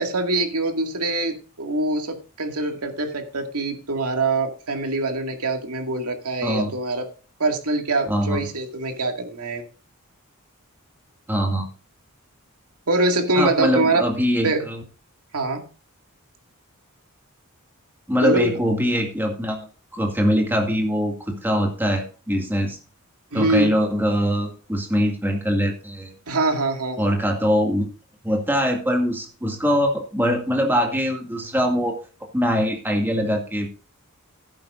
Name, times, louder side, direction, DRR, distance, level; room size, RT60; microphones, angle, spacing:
voice 1, 0.0-7.1 7.4-9.6 12.9-14.0 14.4-14.6 15.3-15.6 18.2-18.6 23.3-23.7 26.3-27.2, right 2 dB, 85° right, 4 dB, 2.2 m, -24 dB
voice 2, 6.4-6.7 8.1-8.5 11.3-11.7 13.3-14.8 18.1-19.7 19.9-22.8 23.3-26.1 27.0-27.9 28.2-32.0 32.3-33.7, equal, 10° right, 1 dB, 2.0 m, -22 dB
16.5 x 8.7 x 2.6 m, 0.35 s
head